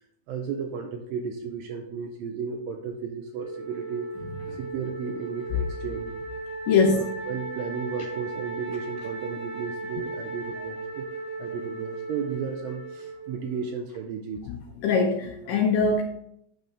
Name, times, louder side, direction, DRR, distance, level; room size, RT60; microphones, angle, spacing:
voice 1, 0.3-4.1 4.5-6.1 6.9-11.1 11.4-14.5, right 5 dB, 85° right, 4 dB, 2.1 m, -34 dB
Wind instrument woodwind instrument, 3.4-13.7, right 3 dB, 30° left, 2.4 m, -37 dB
voice 2, 6.7-7.1 14.5-14.6 14.8-16.0, left 4 dB, 80° left, 2 dB, 1.9 m, -22 dB
8.9 x 5.4 x 3.4 m, 0.75 s
omnidirectional pair, 4.7 m